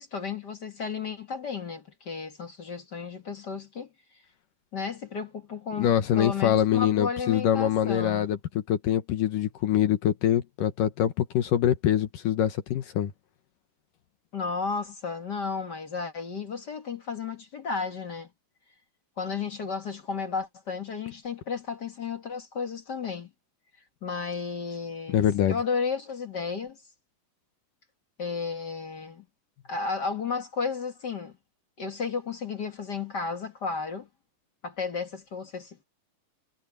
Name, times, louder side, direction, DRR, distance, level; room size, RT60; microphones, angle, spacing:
voice 1, 0.0-3.9 4.7-8.3 14.3-18.3 19.2-23.3 24.0-25.2 25.5-26.8 28.2-29.2 29.7-31.3 31.8-34.1 34.6-35.8, left 5 dB, 40° left, 1.6 m, -33 dB
voice 2, 5.8-8.4 8.7-13.1 25.1-25.6, left 10 dB, 70° left, 2.8 m, -24 dB
omnidirectional pair, 4.1 m